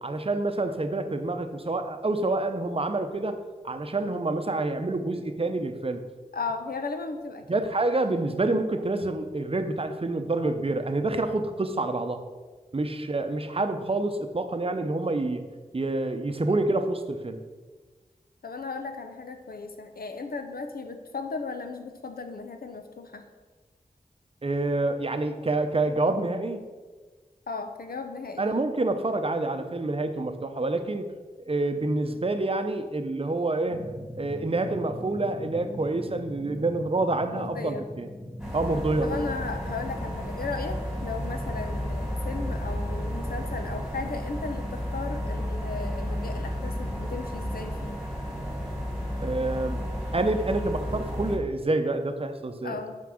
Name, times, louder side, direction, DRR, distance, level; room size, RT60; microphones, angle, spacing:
voice 1, 0.0-3.4 3.6-6.0 7.5-12.2 12.7-15.4 15.7-17.4 24.4-26.6 28.4-31.1 31.4-33.8 34.1-38.1 38.5-39.1 49.2-49.9 50.1-52.8, right 2 dB, 40° right, 7 dB, 0.7 m, -27 dB
voice 2, 6.3-7.6 18.4-23.2 27.5-28.5 37.3-37.8 39.0-48.0 52.6-53.0, left 4 dB, 80° left, 6 dB, 0.7 m, -36 dB
sound 1, 33.7-49.5, left 1 dB, 30° left, 2.4 m, -44 dB
sound 2, 38.4-51.4, equal, 5° right, 2.1 m, -32 dB
5.8 x 4.6 x 6.3 m, 1.4 s
wide cardioid pair, 55°, 15 cm